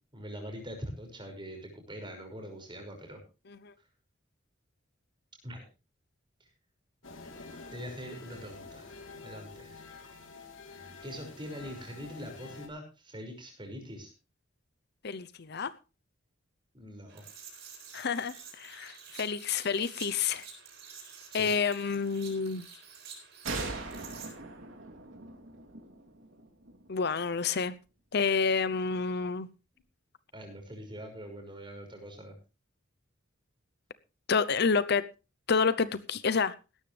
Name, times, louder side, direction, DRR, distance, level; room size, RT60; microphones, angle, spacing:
voice 1, 0.1-3.2 5.4-5.6 7.7-9.9 11.0-14.1 16.7-17.2 21.3-21.5 30.3-32.4, equal, 25° right, 5.8 m, -43 dB
sound 1, 7.0-12.7, left 3 dB, 75° left, 3.3 m, -48 dB
voice 2, 15.0-15.7 17.9-20.5 21.3-22.7 26.9-27.7 28.1-29.5 34.3-35.1 35.5-36.5, left 5 dB, 55° left, 0.7 m, -29 dB
sound 2, 17.1-24.3, right 6 dB, 60° right, 6.7 m, -49 dB
sound 3, 23.5-27.0, right 3 dB, 80° right, 3.1 m, -40 dB
17.0 x 13.0 x 3.3 m
head